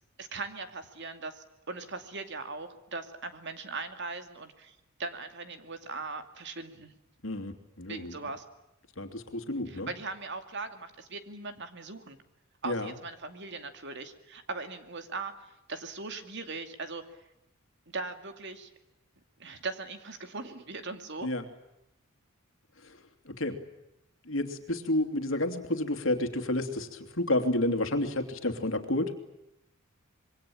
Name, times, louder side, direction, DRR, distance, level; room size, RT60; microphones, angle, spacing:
voice 1, 0.2-6.9 7.9-8.4 9.7-12.2 12.6-15.3 15.7-17.0 17.9-18.7 19.4-21.3, right 3 dB, 55° right, 7 dB, 2.5 m, -39 dB
voice 2, 7.2-8.2 9.0-9.9 12.6-12.9 21.2-21.4 23.3-23.6 24.3-29.1, left 1 dB, 60° left, 7 dB, 2.9 m, -30 dB
26.0 x 23.0 x 8.7 m, 0.87 s
head